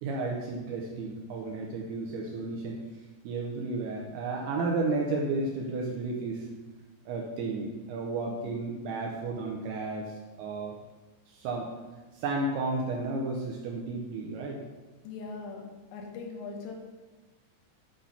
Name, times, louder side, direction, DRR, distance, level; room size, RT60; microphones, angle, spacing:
voice 1, 0.0-2.9 3.2-6.5 7.1-10.1 10.4-10.7 11.3-11.7 12.1-14.6, right 3 dB, 80° right, 0 dB, 2.5 m, -32 dB
voice 2, 15.0-15.6 15.9-16.7, left 4 dB, 80° left, 1 dB, 3.3 m, -40 dB
8.6 x 3.8 x 5.5 m, 1.2 s
omnidirectional pair, 5.3 m